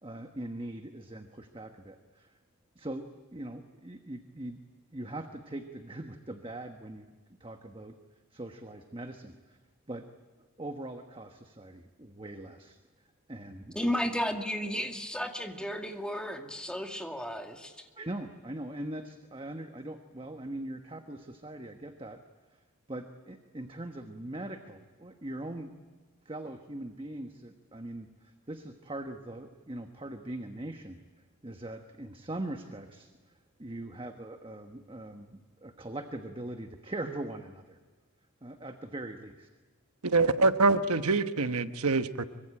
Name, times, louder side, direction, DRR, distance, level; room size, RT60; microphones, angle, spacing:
voice 1, 0.0-2.4 2.8-4.6 4.9-7.1 7.4-7.9 8.3-9.6 9.9-10.0 10.6-12.8 13.3-13.9 17.9-22.2 22.5-22.6 22.9-25.7 26.2-31.0 31.4-37.8 38.4-39.5, right 1 dB, 25° right, 6 dB, 1.2 m, -41 dB
voice 2, 13.8-17.7, equal, 5° left, 3 dB, 2.2 m, -33 dB
voice 3, 40.0-42.2, right 3 dB, 85° right, 10 dB, 1.2 m, -25 dB
25.0 x 24.0 x 9.0 m, 1.4 s
head